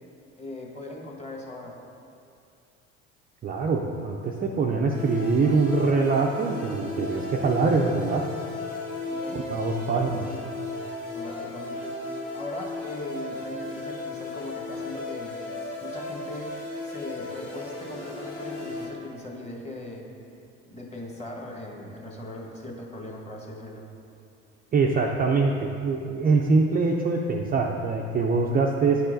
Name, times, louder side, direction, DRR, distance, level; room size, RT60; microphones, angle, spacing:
voice 1, 0.4-1.7 9.1-9.4 9.9-10.4 11.1-15.4 15.8-16.5 16.8-20.1 20.7-23.9, left 2 dB, 20° left, -1 dB, 1.3 m, -39 dB
voice 2, 3.4-8.2 9.3-10.3 24.7-29.0, right 4 dB, 25° right, 0 dB, 0.4 m, -24 dB
sound 1, 4.9-18.8, left 2 dB, 85° left, 1.2 m, -35 dB
9.4 x 4.5 x 2.6 m, 2.6 s
hypercardioid pair, 70°, 37 cm